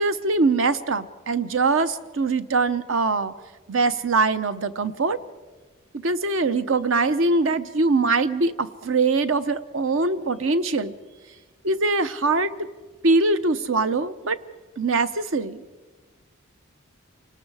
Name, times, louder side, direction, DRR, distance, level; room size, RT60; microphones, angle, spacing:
voice 1, 0.0-3.3 3.7-5.2 6.0-10.9 11.6-12.5 13.0-14.4 14.8-15.6, right 3 dB, 65° right, 13 dB, 0.8 m, -22 dB
28.5 x 19.0 x 4.8 m, 1.3 s
head